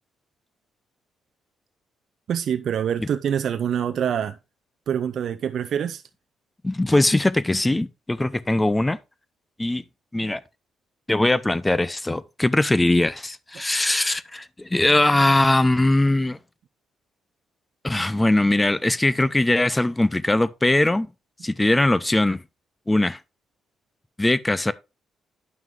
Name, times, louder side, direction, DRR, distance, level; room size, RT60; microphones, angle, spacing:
voice 1, 2.3-4.4 4.9-6.0, right 8 dB, 65° right, 0.5 m, -25 dB
voice 2, 6.6-9.0 9.6-9.8 10.1-10.4 11.1-16.4 17.8-21.1 21.4-22.4 22.9-23.2 24.2-24.7, left 2 dB, 15° left, 0.6 m, -21 dB
9.2 x 6.0 x 3.7 m
cardioid pair, 90°, 0 cm